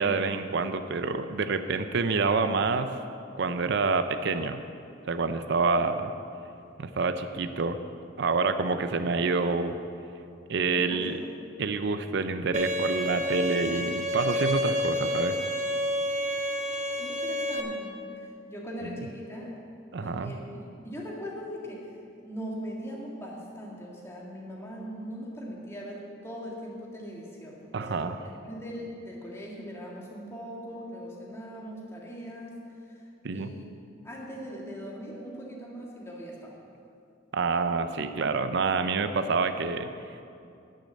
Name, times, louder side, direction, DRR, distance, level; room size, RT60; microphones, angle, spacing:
voice 1, 0.0-2.9 3.4-4.6 5.1-6.1 6.8-7.8 8.2-9.8 10.5-11.1 11.6-15.4 19.9-20.3 27.7-28.2 33.2-33.5 37.3-39.9, right 4 dB, 60° right, 9 dB, 0.5 m, -27 dB
voice 2, 10.7-11.3 16.5-19.6 20.0-21.9 22.2-33.0 33.3-33.7 34.0-36.6, equal, 15° left, -3 dB, 1.9 m, -40 dB
Bowed string instrument, 12.5-17.6, equal, 40° right, 0.9 m, -29 dB
10.5 x 6.6 x 8.5 m, 2.5 s
head